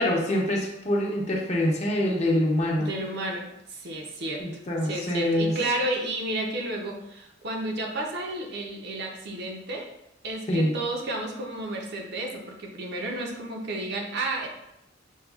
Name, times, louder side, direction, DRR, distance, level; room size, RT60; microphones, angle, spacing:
voice 1, 0.0-2.9 4.4-5.5 10.5-10.7, left 1 dB, 35° left, -2 dB, 0.7 m, -25 dB
voice 2, 2.8-9.9 10.2-14.5, right 1 dB, 60° right, 1 dB, 0.6 m, -32 dB
6.3 x 2.3 x 2.3 m, 0.83 s
head